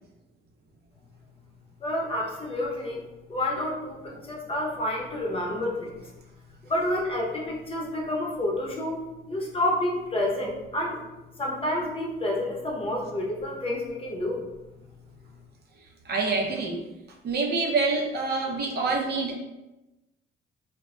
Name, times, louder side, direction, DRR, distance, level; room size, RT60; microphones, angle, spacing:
voice 1, 1.8-3.0 3.3-6.0 6.6-9.0 9.3-11.0 11.4-14.4, left 1 dB, 30° left, -2 dB, 0.7 m, -29 dB
voice 2, 16.1-16.8 17.2-19.4, right 3 dB, 55° right, 1 dB, 0.5 m, -26 dB
2.1 x 2.1 x 3.6 m, 1.0 s
cardioid pair, 90°, 20 cm